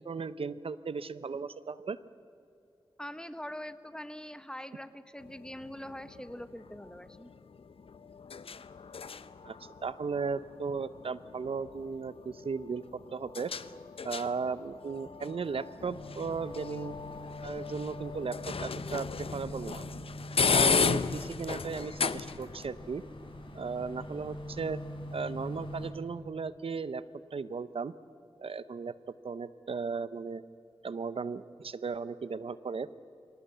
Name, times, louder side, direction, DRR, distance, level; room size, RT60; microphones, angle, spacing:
voice 1, 0.0-2.0 9.4-12.8 13.1-13.5 14.0-16.9 17.4-19.8 20.5-23.0 23.6-24.8 25.1-27.0 27.3-27.9 28.4-28.9 29.2-30.4 30.8-32.9, right 5 dB, 80° right, 16 dB, 0.7 m, -36 dB
voice 2, 3.0-7.3, equal, 10° left, 12 dB, 1.2 m, -43 dB
sound 1, 5.2-22.7, left 5 dB, 85° left, 0.7 m, -35 dB
sound 2, 15.9-25.9, equal, 65° left, 4.4 m, -44 dB
25.0 x 17.5 x 8.0 m, 2.7 s
cardioid pair, 45°, 10 cm